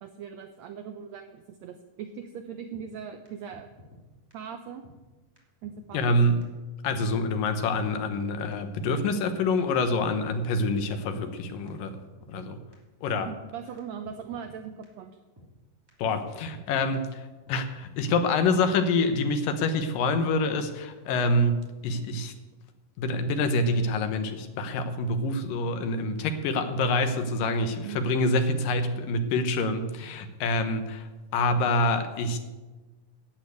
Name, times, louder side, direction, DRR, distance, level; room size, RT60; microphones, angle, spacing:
voice 1, 0.0-3.7 4.3-4.8 5.6-6.2 13.3-15.2 27.8-28.0, right 7 dB, 80° right, 7 dB, 1.6 m, -40 dB
sound 1, 2.7-2.8 3.2-3.3 3.5-4.0 4.3-4.4 4.8-4.9 5.4-5.5 5.6-6.1 6.4-6.5 6.9-7.1 7.5-7.6 7.7-8.2 8.5-8.6 9.0-9.2 9.6-10.3 10.6-10.7 11.1-11.3 11.7-11.8 11.9-12.4 12.7-12.8 13.3-13.4 13.8-13.9 14.0-14.6 14.8-14.9 15.4-15.5 15.9-16.0 16.1-16.7 16.9-17.0 17.5-17.6 18.0-18.1 18.3-18.8 19.0-19.1, left 1 dB, 10° right, 2.4 m, -52 dB
voice 2, 5.9-6.5 6.8-12.0 12.3-12.6 13.0-13.3 16.0-17.2 17.5-22.3 23.0-32.4, left 2 dB, 80° left, 8 dB, 2.8 m, -26 dB
12.0 x 8.8 x 8.1 m, 1.2 s
omnidirectional pair, 3.9 m